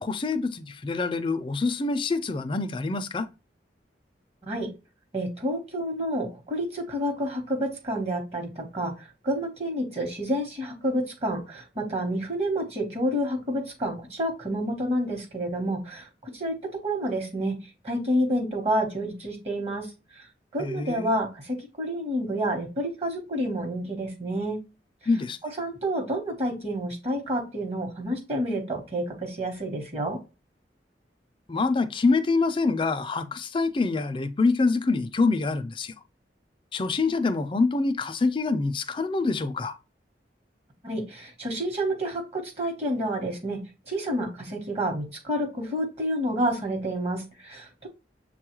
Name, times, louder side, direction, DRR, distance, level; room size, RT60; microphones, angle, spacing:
voice 1, 0.0-3.3 20.6-21.1 25.1-25.4 31.5-35.9 36.7-39.8, left 3 dB, 30° left, 0.4 m, -25 dB
voice 2, 5.1-16.6 16.8-17.5 17.8-24.6 25.6-30.2 40.8-43.6 43.9-47.9, equal, 35° right, 1.1 m, -29 dB
6.9 x 2.3 x 3.0 m
head